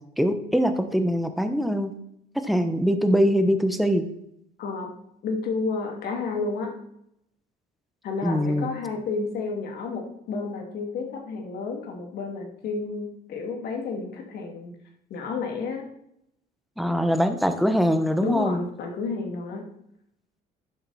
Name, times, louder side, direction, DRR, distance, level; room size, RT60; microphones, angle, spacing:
voice 1, 0.2-1.9 2.4-4.0 8.2-8.7 16.8-18.6, equal, ahead, 8 dB, 1.1 m, -23 dB
voice 2, 4.6-4.9 5.2-6.7 8.0-14.7 15.1-15.9 18.2-19.6, left 4 dB, 70° left, 1 dB, 2.7 m, -31 dB
11.0 x 7.5 x 4.3 m, 0.76 s
cardioid pair, 110°, 17 cm